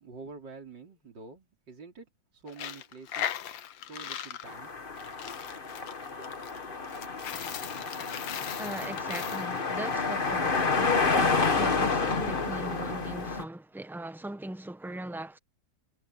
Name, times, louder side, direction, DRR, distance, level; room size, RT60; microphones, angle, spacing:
voice 1, 0.0-4.7, right 4 dB, 65° right, 4.5 m, -47 dB
Coin (dropping), 2.5-10.7, left 10 dB, 75° left, 1.7 m, -39 dB
sound 1, 4.4-13.4, left 4 dB, 30° left, 1.5 m, -29 dB
voice 2, 8.6-15.4, right 1 dB, ahead, 0.8 m, -40 dB
omnidirectional pair, 2.1 m